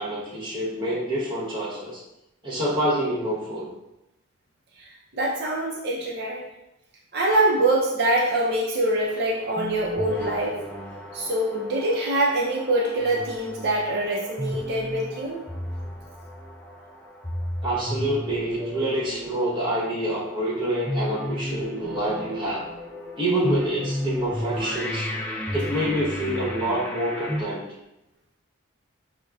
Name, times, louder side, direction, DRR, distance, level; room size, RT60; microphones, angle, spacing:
voice 1, 0.0-2.0 2.4-3.7 17.6-22.6 23.2-25.1 25.5-27.6, right 1 dB, 25° right, -6 dB, 1.0 m, -27 dB
voice 2, 5.1-6.5 7.1-10.6 11.1-15.4, right 1 dB, 50° right, -3 dB, 0.5 m, -24 dB
sound 1, 9.1-27.4, left 1 dB, 10° left, 0.4 m, -33 dB
6.0 x 2.1 x 2.3 m, 0.91 s
head